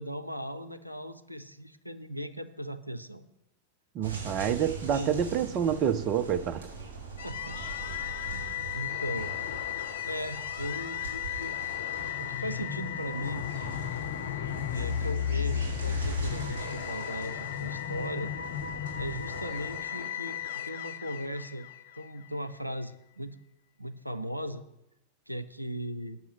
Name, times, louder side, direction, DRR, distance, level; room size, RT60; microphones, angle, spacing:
voice 1, 0.0-3.2 5.0-5.1 7.2-7.9 8.2-9.3 10.0-11.6 12.2-13.5 14.6-18.3 19.0-21.7 22.0-23.4 23.8-24.6 25.3-26.2, equal, 90° right, 0.6 m, -38 dB
voice 2, 3.9-6.7, right 8 dB, 35° right, 0.6 m, -28 dB
sound 1, 4.0-19.8, right 5 dB, 60° right, 5.1 m, -43 dB
sound 2, 7.2-22.3, left 9 dB, 60° left, 0.7 m, -34 dB
9.4 x 7.1 x 7.7 m
figure-of-eight pair, 90°, 0 cm